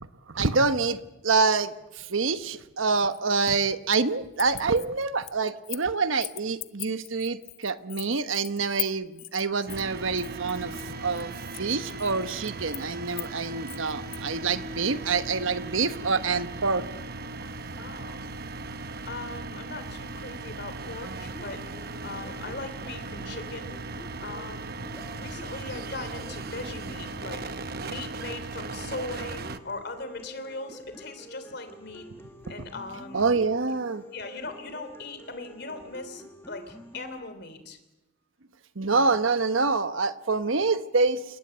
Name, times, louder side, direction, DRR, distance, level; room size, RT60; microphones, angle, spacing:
voice 1, 0.3-11.3 11.6-16.8 33.1-34.0 38.8-41.2, right 4 dB, 70° right, 11 dB, 1.1 m, -26 dB
sound 1, 2.9-4.1 4.3-5.9 6.2-14.3, left 18 dB, 80° left, 0.9 m, -40 dB
sound 2, 9.7-29.6, right 3 dB, 45° right, 1.0 m, -38 dB
voice 2, 17.8-18.2 19.0-21.6 22.0-23.8 24.2-32.0 32.5-33.3 33.7-33.8 34.1-37.8, left 3 dB, 50° left, 9 dB, 3.3 m, -39 dB
sound 3, 21.2-37.2, equal, 10° left, 2.0 m, -47 dB
29.0 x 19.5 x 8.0 m, 0.99 s
head